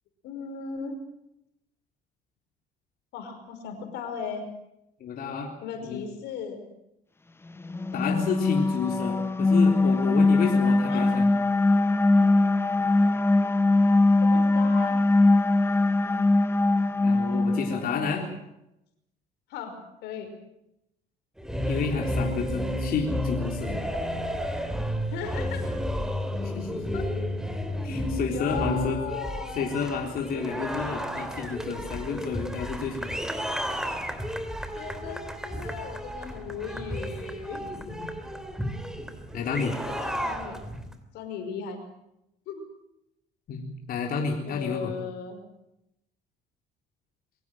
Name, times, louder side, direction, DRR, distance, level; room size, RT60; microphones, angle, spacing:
voice 1, 0.2-1.0 3.1-4.5 5.6-6.6 10.9-11.1 14.2-15.0 18.2-18.3 19.5-20.3 25.1-25.6 26.9-27.0 28.3-29.7 34.8-37.6 39.9-40.8 41.1-41.8 42.5-42.7 44.4-45.4, left 6 dB, 85° left, 6 dB, 5.2 m, -37 dB
voice 2, 5.0-5.5 5.8-6.0 7.9-11.3 17.0-18.3 21.7-23.8 26.4-26.8 27.8-29.0 29.6-33.2 37.9-38.1 39.3-39.7 43.5-44.9, left 5 dB, 60° left, 1 dB, 3.9 m, -30 dB
sound 1, 7.6-18.1, left 2 dB, 15° left, 0.9 m, -21 dB
sound 2, 21.4-40.9, equal, 5° right, 3.0 m, -32 dB
23.5 x 17.0 x 9.2 m, 0.84 s
cardioid pair, 110°, 17 cm